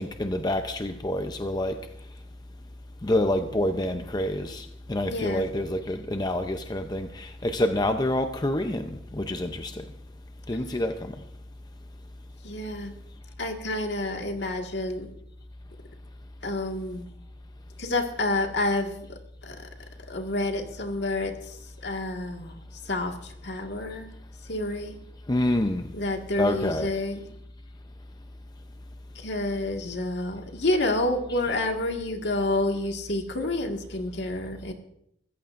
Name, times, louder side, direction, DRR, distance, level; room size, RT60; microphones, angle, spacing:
voice 1, 0.0-1.8 3.0-9.8 10.5-11.1 25.3-25.9 26.4-26.9, left 1 dB, 20° left, 0.6 m, -27 dB
voice 2, 5.1-5.5 12.4-12.9 13.4-15.1 16.4-17.1 17.8-19.0 19.4-19.5 20.1-21.3 21.8-22.6 22.9-23.1 23.4-24.1 24.5-25.0 25.9-27.2 29.2-34.7, left 2 dB, 65° left, 1.8 m, -29 dB
24.5 x 14.5 x 2.6 m
head